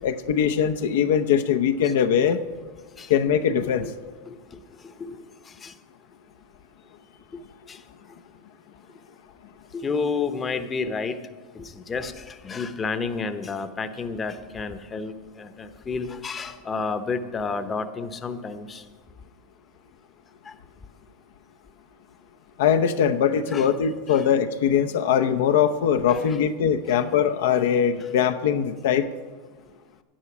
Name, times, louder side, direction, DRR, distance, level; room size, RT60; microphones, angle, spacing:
voice 1, 0.0-2.4 3.1-3.9 22.6-29.1, left 8 dB, 75° left, 7 dB, 0.7 m, -21 dB
voice 2, 4.2-5.2 5.6-5.7 7.7-7.8 9.7-11.2 11.5-18.8 20.5-20.6 23.5-23.7 24.1-24.2 26.1-26.3 26.9-27.0, left 4 dB, 20° left, 9 dB, 0.8 m, -31 dB
10.0 x 10.0 x 6.1 m, 1.4 s
hypercardioid pair, 115°, 0 cm